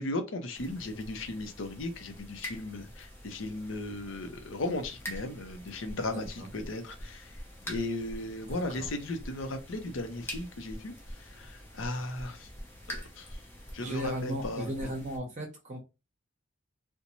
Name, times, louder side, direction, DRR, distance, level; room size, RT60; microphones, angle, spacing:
voice 1, 0.0-7.4 7.7-10.9 11.2-12.5 12.9-13.4 13.7-14.9, left 2 dB, 70° left, 0.6 m, -36 dB
sound 1, 0.5-15.2, equal, 10° left, 0.6 m, -45 dB
voice 2, 6.1-6.5 8.5-8.9 13.8-15.8, equal, 35° right, 0.7 m, -36 dB
2.6 x 2.1 x 2.9 m
head